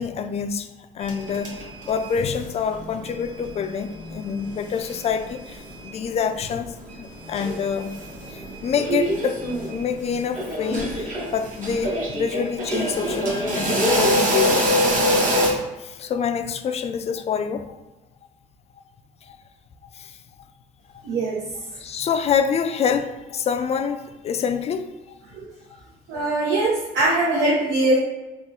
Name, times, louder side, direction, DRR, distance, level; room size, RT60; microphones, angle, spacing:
voice 1, 0.0-7.9 8.3-14.8 15.4-17.8 19.2-19.4 19.8-20.5 20.9-21.0 21.8-25.2, left 7 dB, 40° left, 8 dB, 0.4 m, -27 dB
sound 1, 1.0-2.4 2.7-6.0 6.3-6.4 6.9-15.5, equal, 50° right, 1.3 m, -25 dB
voice 2, 21.0-21.4 25.3-25.4 26.1-28.0, right 2 dB, 75° right, -7 dB, 1.0 m, -21 dB
3.6 x 2.4 x 4.2 m, 1.1 s
cardioid pair, 110°, 17 cm